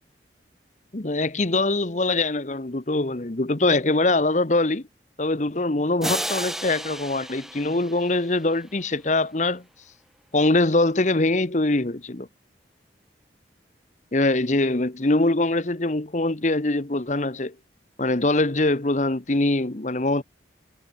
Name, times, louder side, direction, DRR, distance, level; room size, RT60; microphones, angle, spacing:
voice 1, 0.9-4.8 5.2-9.6 10.3-12.3 14.1-17.5 18.0-20.2, left 2 dB, 40° left, 1.1 m, -23 dB
sound 1, 6.0-8.7, right 1 dB, ahead, 0.6 m, -32 dB
head